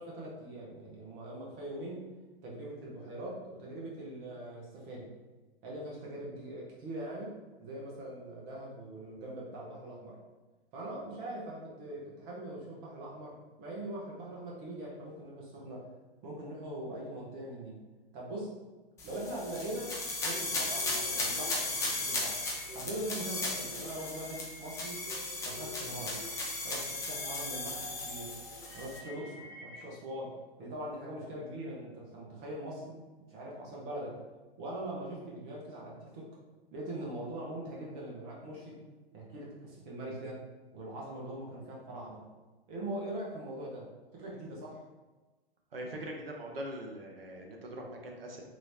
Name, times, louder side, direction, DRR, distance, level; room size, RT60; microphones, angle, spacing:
voice 1, 0.0-2.0 2.4-5.1 5.6-10.2 10.7-15.9 16.2-17.8 18.1-18.5 19.0-22.4 22.7-25.0 25.4-26.2 26.6-28.3 28.7-30.3 30.6-33.0 33.3-34.2 34.6-36.3 36.7-38.8 39.1-40.4 40.7-42.3 42.7-43.9 44.1-44.8, right 1 dB, 35° right, -4 dB, 1.1 m, -42 dB
sound 1, 19.0-29.0, left 2 dB, 10° left, 0.4 m, -36 dB
sound 2, 20.3-29.8, left 2 dB, 90° right, 1.3 m, -49 dB
voice 2, 45.7-48.4, right 1 dB, 75° right, 1 dB, 0.9 m, -42 dB
3.0 x 3.0 x 2.7 m, 1.2 s
figure-of-eight pair, 115°, 30 cm